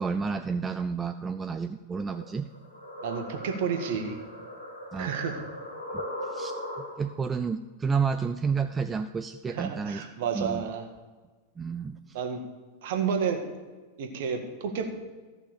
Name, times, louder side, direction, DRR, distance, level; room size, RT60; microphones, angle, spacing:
voice 1, 0.0-2.5 4.9-5.1 5.9-10.0 10.3-10.7 11.6-12.2, right 5 dB, 15° right, 10 dB, 0.4 m, -31 dB
sound 1, 2.1-7.2, left 1 dB, 85° left, 2.2 m, -39 dB
voice 2, 3.0-4.2 5.0-5.4 9.5-10.8 12.1-12.4 12.8-13.4 14.0-14.9, right 6 dB, 55° right, 5 dB, 1.6 m, -30 dB
14.0 x 5.9 x 7.0 m, 1.3 s
figure-of-eight pair, 90°, 0 cm